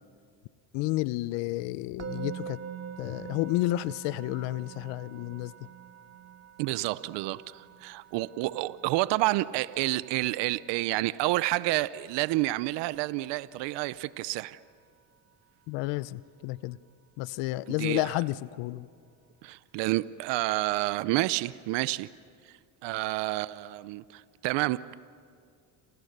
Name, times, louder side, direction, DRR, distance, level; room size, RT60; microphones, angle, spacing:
voice 1, 0.7-2.6 3.0-5.5 15.7-16.8 17.2-18.9, left 18 dB, 80° left, 0.7 m, -31 dB
Musical instrument, 2.0-13.1, right 8 dB, 35° right, 1.4 m, -45 dB
voice 2, 6.6-14.6 17.8-18.1 19.4-22.1 22.8-24.9, right 18 dB, 70° right, 0.7 m, -29 dB
28.5 x 27.5 x 6.7 m
supercardioid pair, 100°, 43 cm